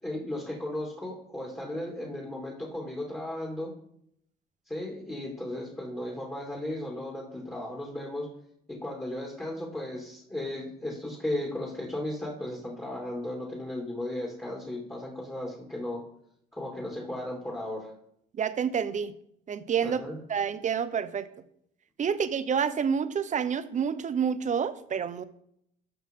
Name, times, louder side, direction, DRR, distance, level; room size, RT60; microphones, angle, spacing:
voice 1, 0.0-3.7 4.7-8.3 8.7-16.0 16.5-17.9 19.8-20.2, left 1 dB, 15° left, -2 dB, 2.5 m, -35 dB
voice 2, 18.4-19.1 19.5-20.0 20.3-21.3 22.0-25.2, right 7 dB, 40° right, 12 dB, 0.8 m, -28 dB
12.5 x 6.0 x 3.7 m, 0.71 s
cardioid pair, 90°, 18 cm